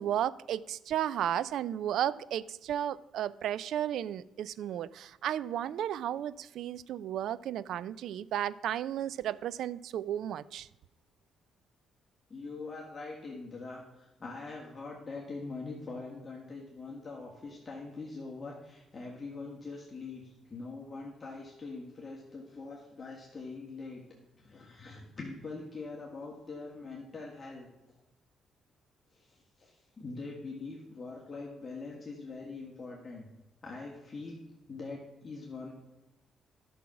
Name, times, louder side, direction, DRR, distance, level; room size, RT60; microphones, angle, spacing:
voice 1, 0.0-10.7, right 11 dB, 75° right, 0.4 m, -33 dB
voice 2, 12.3-24.0 24.3-27.7 29.1-33.3 33.6-34.4 34.7-35.7, left 3 dB, 30° left, 2.0 m, -43 dB
11.0 x 6.3 x 5.9 m
cardioid pair, 90°, 0 cm